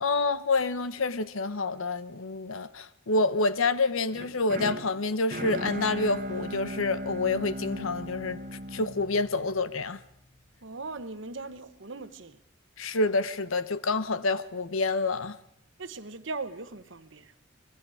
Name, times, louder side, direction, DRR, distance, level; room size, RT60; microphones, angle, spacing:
voice 1, 0.0-8.4 8.7-10.0 12.8-15.4, left 3 dB, 80° left, 1.0 m, -28 dB
sound 1, 4.1-10.2, right 1 dB, 40° right, 1.4 m, -38 dB
voice 2, 10.6-12.4 15.8-17.3, right 3 dB, 60° right, 1.1 m, -39 dB
26.0 x 21.0 x 5.0 m
head